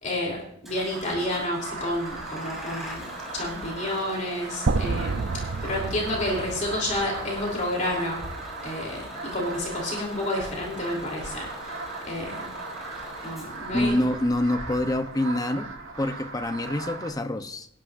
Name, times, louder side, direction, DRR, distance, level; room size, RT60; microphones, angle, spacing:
voice 1, 0.0-3.1 3.3-8.2 8.6-11.7 12.0-12.5 13.2-13.9, left 1 dB, 40° left, -1 dB, 3.3 m, -30 dB
Bus / Engine starting, 0.7-16.9, equal, ahead, 5.1 m, -43 dB
sound 1, 0.7-17.1, right 3 dB, 75° right, 3.9 m, -39 dB
sound 2, 4.7-8.7, right 3 dB, 60° right, 0.5 m, -30 dB
voice 2, 13.7-15.7 16.0-17.7, left 1 dB, 20° left, 9 dB, 0.7 m, -26 dB
25.5 x 11.0 x 2.6 m, 0.72 s
head